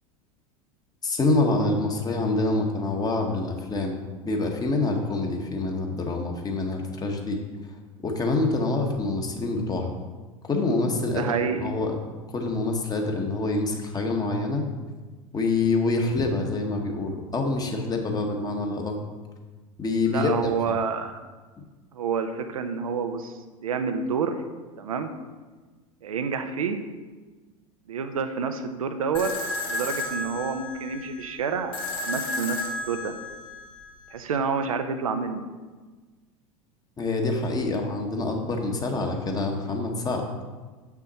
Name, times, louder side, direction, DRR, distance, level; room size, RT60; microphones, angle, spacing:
voice 1, 1.0-4.0 4.2-7.4 8.0-9.9 10.4-11.3 11.6-11.9 12.3-14.7 15.3-19.0 19.8-20.3 20.7-20.8 37.0-40.2, left 3 dB, 20° left, 2 dB, 1.3 m, -26 dB
voice 2, 11.1-11.7 20.1-21.2 21.9-23.3 23.6-24.4 24.8-25.1 26.0-26.8 27.9-29.3 29.7-33.1 34.1-35.4, right 6 dB, 75° right, 7 dB, 0.7 m, -28 dB
sound 1, 29.1-34.2, left 2 dB, 70° left, 2.1 m, -33 dB
7.6 x 6.0 x 4.2 m, 1.3 s
figure-of-eight pair, 80°, 18 cm